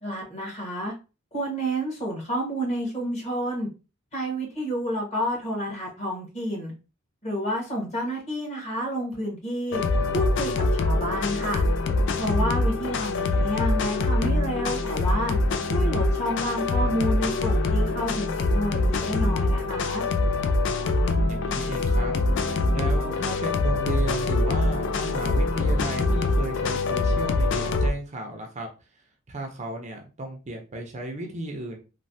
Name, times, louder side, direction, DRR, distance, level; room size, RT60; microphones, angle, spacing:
voice 1, 0.0-0.9 1.3-3.7 4.1-6.7 7.2-9.8 10.1-11.6 12.2-15.3 15.7-20.0, equal, 35° left, -2 dB, 1.3 m, -29 dB
sound 1, 9.7-27.9, left 2 dB, 60° left, 0.4 m, -24 dB
voice 2, 13.3-13.7 20.9-22.2 22.7-28.7 29.3-31.8, right 2 dB, 35° right, 3 dB, 0.5 m, -35 dB
3.1 x 2.1 x 2.6 m, 0.31 s
head